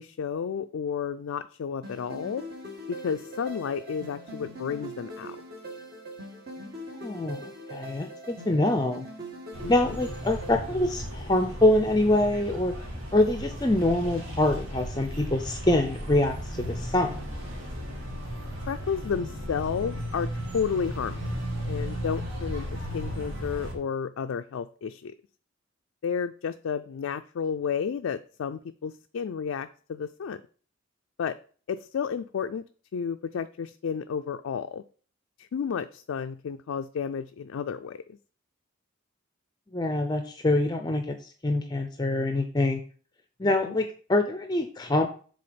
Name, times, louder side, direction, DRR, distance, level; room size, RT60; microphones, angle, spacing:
voice 1, 0.0-2.5 2.9-5.4 9.6-10.0 18.7-21.2 21.7-22.7 22.9-25.1 26.0-30.4 31.2-31.4 31.7-32.6 32.9-34.8 35.4-38.0 43.4-43.8, left 6 dB, 85° left, 7 dB, 0.4 m, -32 dB
sound 1, 1.8-10.5, equal, 50° right, 1.7 m, -42 dB
voice 2, 6.6-7.4 7.7-9.0 9.7-12.7 13.1-17.1 39.7-42.8 43.4-45.1, left 1 dB, 20° left, 6 dB, 0.5 m, -25 dB
sound 2, 9.5-23.8, equal, 75° right, 2.2 m, -35 dB
6.9 x 3.9 x 5.0 m, 0.42 s
head